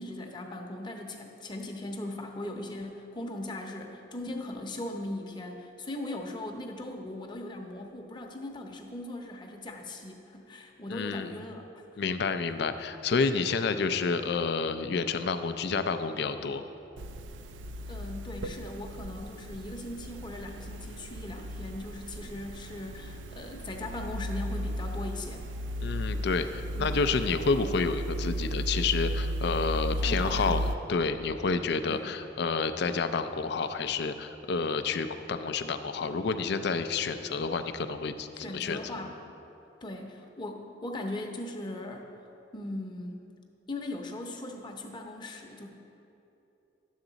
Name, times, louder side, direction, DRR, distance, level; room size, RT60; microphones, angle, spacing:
voice 1, 0.0-11.6 17.9-25.4 26.7-27.0 30.0-30.6 31.9-32.0 38.3-39.2 39.8-42.1 42.5-43.3 43.7-45.7, left 1 dB, 25° left, 2 dB, 0.8 m, -39 dB
voice 2, 10.9-11.3 12.0-16.6 25.8-38.8, left 4 dB, 65° left, 10 dB, 0.4 m, -29 dB
sound 1, 17.0-30.7, equal, 85° right, 0.4 m, -35 dB
10.5 x 7.3 x 3.9 m, 2.9 s
head